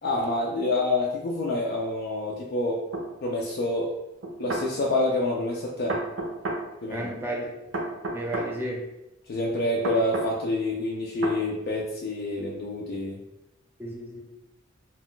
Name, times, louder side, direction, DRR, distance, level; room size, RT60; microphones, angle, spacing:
voice 1, 0.0-2.9 3.2-4.0 4.4-6.0 6.8-7.1 9.3-13.2, left 2 dB, 55° left, -2 dB, 0.4 m, -27 dB
sound 1, 2.9-3.1 4.2-4.7 5.9-6.6 7.7-8.5 9.8-10.3 11.2-11.4, right 2 dB, 75° right, 0.6 m, -30 dB
voice 2, 6.9-7.4 8.1-8.8 13.8-14.2, right 1 dB, 10° right, -2 dB, 0.6 m, -32 dB
2.3 x 2.2 x 3.8 m, 0.92 s
head